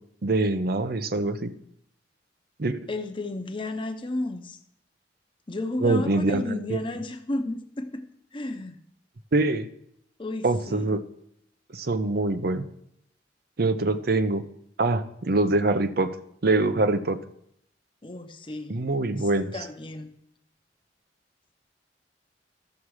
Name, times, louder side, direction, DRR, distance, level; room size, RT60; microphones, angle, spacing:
voice 1, 0.2-1.5 2.6-2.8 5.8-6.8 9.3-9.7 10.4-11.0 11.7-12.6 13.6-14.4 14.8-16.2 16.4-17.2 18.7-19.5, right 2 dB, 60° right, 11 dB, 0.7 m, -24 dB
voice 2, 2.9-4.6 5.5-8.0 8.3-8.8 10.2-10.9 18.0-18.8 19.5-20.1, left 2 dB, 30° left, 6 dB, 0.8 m, -32 dB
12.5 x 7.3 x 4.8 m, 0.72 s
head